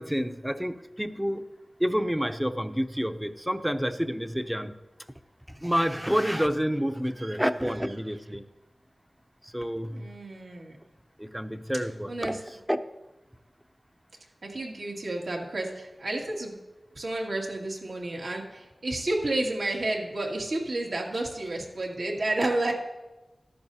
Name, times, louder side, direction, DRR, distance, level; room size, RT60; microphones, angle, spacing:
voice 1, 0.0-1.5 1.8-4.7 5.5-8.4 9.4-10.1 11.2-12.4 12.7-12.8, equal, 5° right, 10 dB, 0.6 m, -28 dB
voice 2, 9.9-10.8 12.1-12.4 14.4-16.5 16.9-22.7, right 2 dB, 80° right, -2 dB, 2.2 m, -31 dB
13.5 x 11.5 x 2.8 m, 1.1 s
wide cardioid pair, 55°, 0 cm